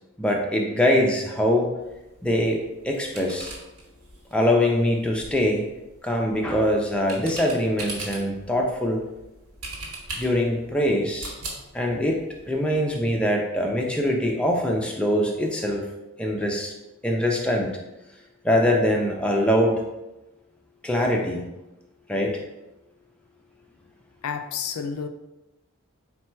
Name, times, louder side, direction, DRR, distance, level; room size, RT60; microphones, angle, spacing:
voice 1, 0.2-1.7 2.2-3.5 4.3-5.7 6.0-9.0 10.2-11.4 11.7-15.9 16.2-16.7 17.0-17.7 18.4-19.8 20.8-21.4 22.1-22.4, left 1 dB, 5° left, 0 dB, 0.4 m, -23 dB
sound 1, 1.8-12.8, right 2 dB, 85° right, 1.2 m, -41 dB
voice 2, 24.2-25.1, left 6 dB, 85° left, 7 dB, 0.4 m, -30 dB
4.3 x 2.2 x 4.4 m, 0.99 s
head